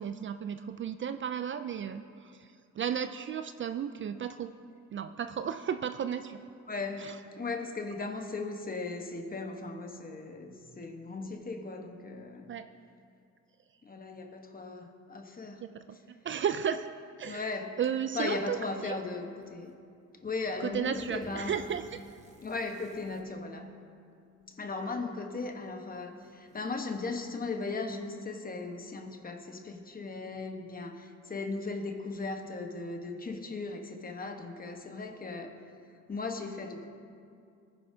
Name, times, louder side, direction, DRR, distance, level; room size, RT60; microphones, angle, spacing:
voice 1, 0.0-4.5 4.9-6.4 7.0-7.2 12.5-12.7 15.6-16.0 16.2-16.9 17.2-17.5 17.8-19.0 20.6-21.8 24.8-25.0, right 8 dB, 40° right, 10 dB, 0.4 m, -34 dB
voice 2, 6.7-12.5 13.8-15.6 17.2-17.8 18.1-19.7 20.2-21.5 22.4-23.7 24.5-35.6 36.1-36.9, left 3 dB, 30° left, 5 dB, 1.2 m, -37 dB
sound 1, 19.4-19.8 20.3-23.3 24.4-24.5 25.4-25.5 26.0-27.5, right 1 dB, 25° right, 1.3 m, -55 dB
19.0 x 10.5 x 2.8 m, 2.4 s
cardioid pair, 90°, 30 cm